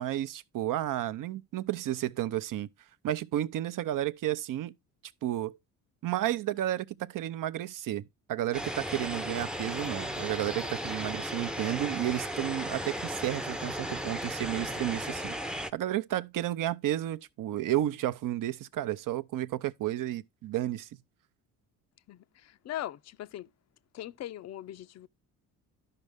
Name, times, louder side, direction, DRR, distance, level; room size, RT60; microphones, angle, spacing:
voice 1, 0.0-2.7 3.0-4.7 5.2-5.5 6.0-15.3 15.7-20.9, right 13 dB, 55° right, 0.6 m, -32 dB
sound 1, 8.5-15.7, equal, ahead, 0.6 m, -35 dB
voice 2, 22.1-23.5 23.9-25.1, left 13 dB, 40° left, 0.5 m, -40 dB
12.5 x 5.4 x 3.4 m
hypercardioid pair, 60°, 40 cm